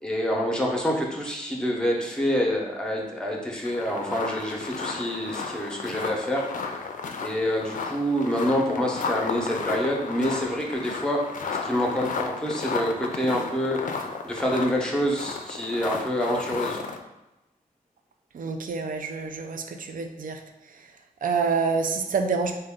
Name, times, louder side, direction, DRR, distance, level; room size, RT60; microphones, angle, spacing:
voice 1, 0.0-6.5 7.2-11.3 11.6-13.8 14.2-16.8, equal, 5° left, -1 dB, 0.7 m, -27 dB
sound 1, 3.6-17.0, left 4 dB, 60° left, 0.4 m, -33 dB
voice 2, 18.3-20.4 20.7-20.9 21.2-22.6, right 4 dB, 65° right, 5 dB, 0.4 m, -27 dB
3.8 x 2.2 x 3.5 m, 0.98 s
wide cardioid pair, 85°, 15 cm